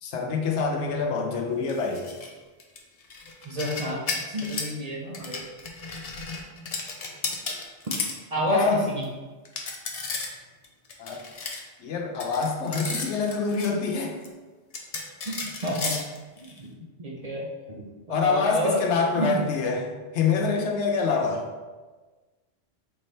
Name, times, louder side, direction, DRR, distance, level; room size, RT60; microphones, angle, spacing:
voice 1, 0.0-2.1 8.5-8.9 11.0-11.2 11.8-14.2 18.1-21.5, left 4 dB, 85° left, 2 dB, 1.0 m, -26 dB
sound 1, 1.6-2.3 2.6-4.7 5.1-8.2 8.6-8.7 9.0-9.1 9.4-10.3 10.6-11.6 12.2-13.7 14.2-14.3 14.7-16.6, left 4 dB, 45° left, 0.5 m, -34 dB
voice 2, 3.4-5.5 8.3-9.1 15.2-15.9 16.4-16.7 17.0-18.8 19.1-19.4, equal, 40° right, -3 dB, 0.6 m, -30 dB
4.3 x 3.6 x 3.2 m, 1.3 s
omnidirectional pair, 1.2 m